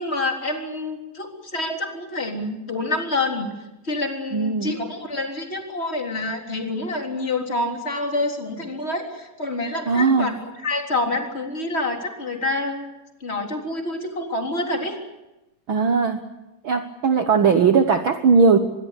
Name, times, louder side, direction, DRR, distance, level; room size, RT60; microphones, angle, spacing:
voice 1, 0.0-3.5 3.8-10.3 10.6-12.8 13.2-15.0, left 2 dB, 20° left, 3 dB, 3.7 m, -27 dB
voice 2, 4.3-4.7 9.9-10.3 15.7-16.2 16.6-18.6, right 5 dB, 55° right, 8 dB, 1.5 m, -18 dB
25.0 x 22.0 x 8.4 m, 0.99 s
omnidirectional pair, 3.8 m